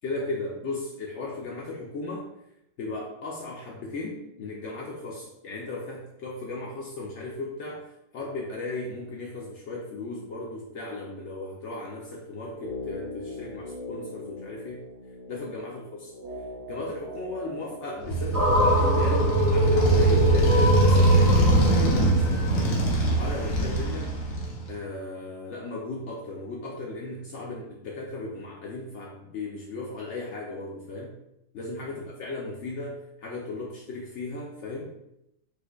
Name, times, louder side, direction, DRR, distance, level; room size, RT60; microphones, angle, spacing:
voice 1, 0.0-2.2 2.8-7.8 8.1-14.8 15.3-16.1 16.7-24.1 24.7-31.2 31.5-34.9, left 2 dB, 85° left, -3 dB, 0.6 m, -36 dB
sound 1, 12.5-24.6 24.9-25.0, left 1 dB, 75° right, 1.1 m, -41 dB
Motorcycle, 18.0-24.7, right 2 dB, 60° left, 1.0 m, -22 dB
sound 2, 18.3-22.6, left 2 dB, 30° right, 0.7 m, -25 dB
4.3 x 2.5 x 2.2 m, 0.84 s
omnidirectional pair, 1.8 m